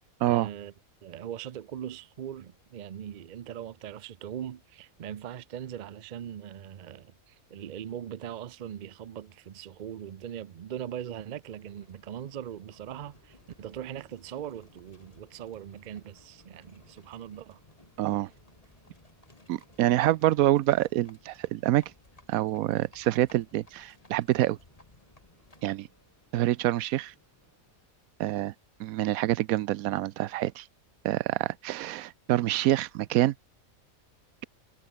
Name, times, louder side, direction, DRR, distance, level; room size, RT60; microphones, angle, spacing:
voice 1, 0.2-0.7 1.0-17.6, right 10 dB, 55° right, 0.5 m, -40 dB
Livestock farm animals working animals, 11.4-25.8, left 2 dB, 25° left, 2.8 m, -60 dB
Subway metro underground, 12.8-28.2, equal, 10° left, 5.4 m, -64 dB
voice 2, 18.0-18.3 19.5-21.8 22.3-24.6 25.6-25.9 26.3-27.1 28.2-28.5 28.8-30.6 31.0-33.3, right 14 dB, 85° right, 1.0 m, -26 dB
omnidirectional pair, 1.4 m